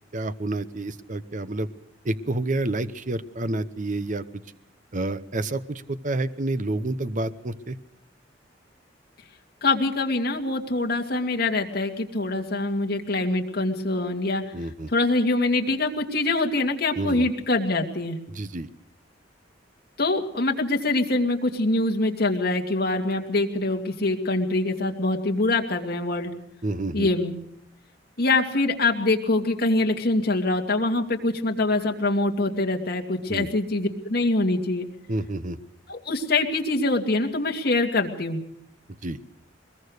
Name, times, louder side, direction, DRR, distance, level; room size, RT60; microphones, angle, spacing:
voice 1, 0.1-1.7 2.0-4.2 4.9-7.8 14.5-14.9 16.9-17.3 18.3-18.7 26.6-27.1 33.3-33.5 35.1-35.6 39.0-39.2, right 2 dB, 45° right, 13 dB, 0.9 m, -29 dB
voice 2, 9.6-14.4 14.9-18.2 20.0-26.3 26.9-27.3 28.2-34.9 35.9-38.4, left 2 dB, 55° left, 2 dB, 2.5 m, -24 dB
23.0 x 21.5 x 6.5 m, 0.74 s
head